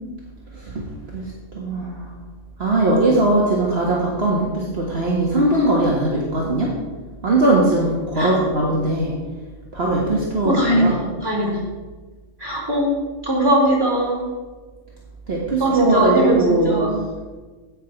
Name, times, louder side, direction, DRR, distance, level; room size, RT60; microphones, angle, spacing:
voice 1, 1.1-2.1 2.6-6.7 7.2-9.1 9.7-11.0 15.3-16.8, right 2 dB, 45° right, -4 dB, 2.0 m, -20 dB
voice 2, 10.4-11.6 12.4-12.9 13.2-14.3 15.6-17.0, right 1 dB, 15° right, -5 dB, 4.0 m, -20 dB
16.5 x 5.7 x 6.0 m, 1.3 s
omnidirectional pair, 1.5 m